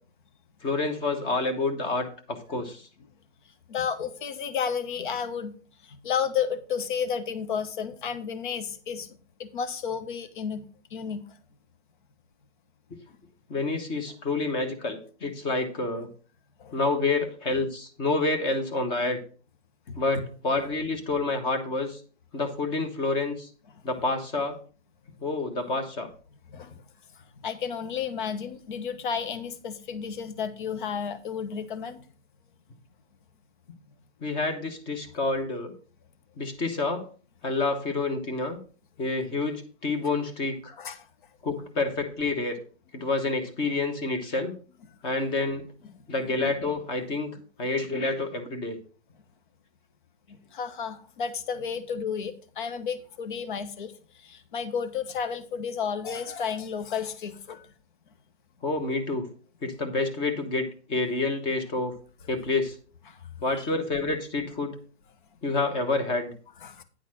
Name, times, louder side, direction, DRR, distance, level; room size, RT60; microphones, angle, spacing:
voice 1, 0.6-2.9 13.5-16.1 16.7-19.2 20.0-22.0 22.3-23.5 23.8-24.6 25.2-26.1 34.2-35.7 36.4-37.1 37.4-38.6 39.0-40.7 41.4-42.6 42.9-44.5 45.0-45.6 46.1-47.3 47.6-48.8 58.6-59.3 59.6-61.9 62.3-62.7 63.4-64.8 65.4-66.3, left 3 dB, 15° left, 7 dB, 0.9 m, -28 dB
voice 2, 3.7-5.6 5.8-11.3 13.1-13.2 16.6-16.8 19.9-20.0 26.5-26.7 27.2-32.1 40.8-41.1 50.5-57.7 63.1-63.2 63.5-63.7 66.6-66.8, left 7 dB, 45° left, 10 dB, 1.2 m, -32 dB
9.7 x 4.0 x 6.3 m, 0.39 s
hypercardioid pair, 155°, 35 cm